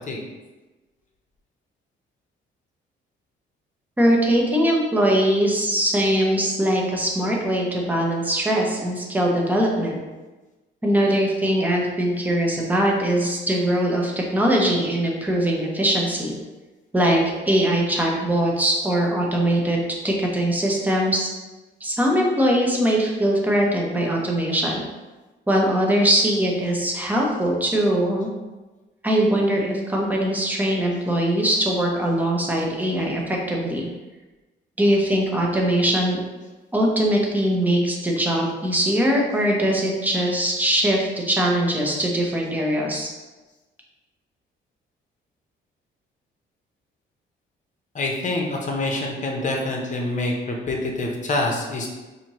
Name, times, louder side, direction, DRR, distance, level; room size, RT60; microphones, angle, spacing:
voice 1, 4.0-10.0 10.8-16.3 16.9-21.3 21.8-24.8 25.5-28.3 29.0-33.9 34.8-36.2 36.7-43.1, right 1 dB, 10° right, -2 dB, 0.8 m, -21 dB
voice 2, 47.9-51.9, left 2 dB, 40° left, 0 dB, 0.8 m, -26 dB
4.2 x 2.8 x 3.0 m, 1.2 s
cardioid pair, 90°, 20 cm